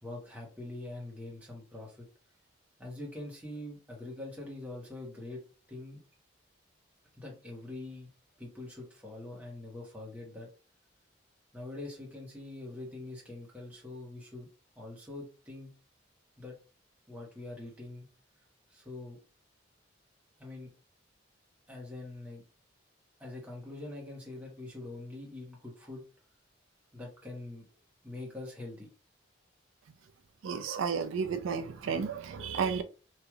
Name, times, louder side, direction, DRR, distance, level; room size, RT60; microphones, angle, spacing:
voice 1, 0.0-2.1 2.8-5.4 5.7-6.0 7.2-8.1 8.4-10.5 11.5-14.5 14.7-15.7 16.4-16.5 17.1-18.1 18.7-19.2 20.4-20.7 21.7-22.4 23.2-26.0 26.9-27.6 28.0-28.9, left 2 dB, 10° right, 1.1 m, -44 dB
voice 2, 30.4-32.8, right 6 dB, 90° right, 0.4 m, -32 dB
3.0 x 2.6 x 2.3 m
head